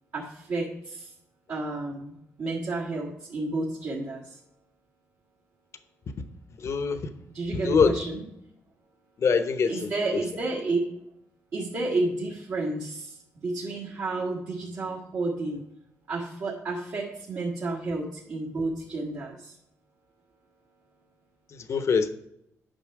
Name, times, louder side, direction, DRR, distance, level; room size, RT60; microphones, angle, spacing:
voice 1, 0.1-1.1 1.5-4.4 7.3-8.2 9.7-10.8 11.5-15.6 16.1-19.6, right 2 dB, 60° right, -5 dB, 1.7 m, -31 dB
voice 2, 6.6-7.0 7.5-7.9 9.2-9.9 21.5-22.1, left 5 dB, 55° left, 10 dB, 0.8 m, -24 dB
8.9 x 5.6 x 4.8 m, 0.81 s
cardioid pair, 80°, 6 cm